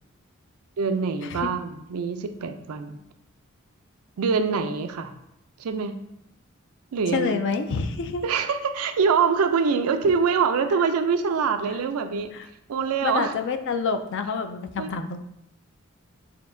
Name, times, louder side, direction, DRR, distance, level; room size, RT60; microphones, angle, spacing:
voice 1, 0.8-3.0 4.2-5.1 5.6-6.0 6.9-7.5 8.2-12.3 12.7-13.3 14.8-14.9, right 5 dB, 85° right, 8 dB, 0.4 m, -24 dB
voice 2, 7.1-8.2 12.3-12.5 13.0-15.2, left 5 dB, 55° left, 9 dB, 0.4 m, -27 dB
6.7 x 2.7 x 2.6 m, 0.82 s
head